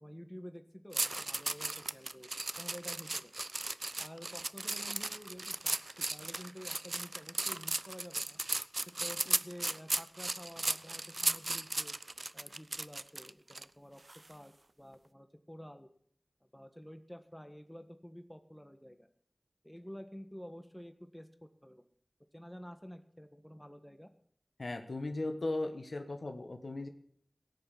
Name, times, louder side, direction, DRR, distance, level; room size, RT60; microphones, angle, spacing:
voice 1, 0.0-3.3 4.0-8.4 8.9-11.9 12.3-14.0 14.3-15.9 16.5-19.1 19.6-21.9 22.3-24.1, equal, 10° left, 7 dB, 1.5 m, -50 dB
sound 1, 0.9-13.6 14.1-14.3, right 2 dB, 60° right, 0.5 m, -36 dB
voice 2, 24.6-26.9, left 2 dB, 90° left, 6 dB, 1.4 m, -37 dB
17.5 x 6.9 x 8.4 m, 0.64 s
wide cardioid pair, 55°, 0 cm